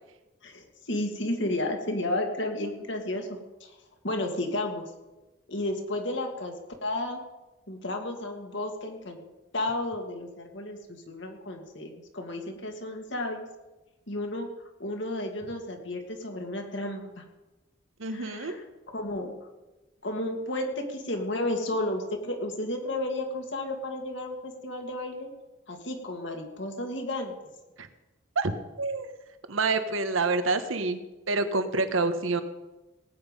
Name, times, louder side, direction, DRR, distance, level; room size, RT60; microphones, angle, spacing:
voice 1, 0.4-3.3 3.6-3.7 4.0-4.9 5.5-6.5 6.8-7.2 7.7-9.2 9.5-13.5 14.1-14.5 14.8-17.2 18.1-18.6 18.9-19.3 20.0-25.3 25.7-27.3, left 1 dB, 65° left, 3 dB, 2.3 m, -32 dB
voice 2, 18.0-18.6 27.8-27.9 28.3-29.1 29.5-31.0 31.3-32.4, right 3 dB, 85° right, 9 dB, 1.2 m, -27 dB
18.0 x 9.3 x 5.4 m, 1.1 s
head